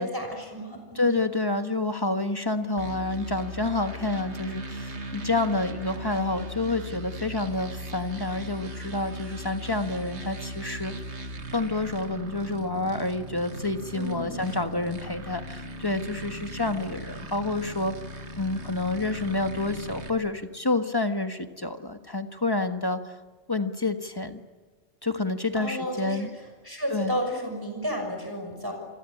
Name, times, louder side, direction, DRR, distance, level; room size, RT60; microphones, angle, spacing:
voice 1, 0.0-1.2 13.9-14.6 25.5-26.3 26.6-28.7, equal, 20° right, 4 dB, 6.3 m, -32 dB
voice 2, 0.9-10.9 11.5-17.9 18.3-23.1 23.5-24.4 25.0-26.3 26.9-27.2, left 2 dB, 20° left, 7 dB, 1.5 m, -28 dB
sound 1, 2.8-20.1, right 1 dB, 80° right, 2.2 m, -38 dB
28.0 x 23.0 x 8.7 m, 1.4 s
omnidirectional pair, 1.2 m